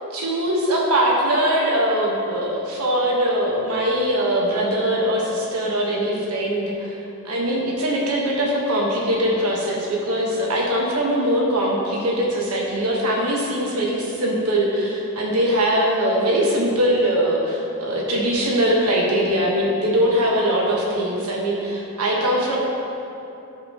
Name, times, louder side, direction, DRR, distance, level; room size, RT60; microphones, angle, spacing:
voice 1, 0.1-6.9 7.2-22.6, equal, 85° right, -3 dB, 1.4 m, -21 dB
14.5 x 5.1 x 3.1 m, 2.8 s
head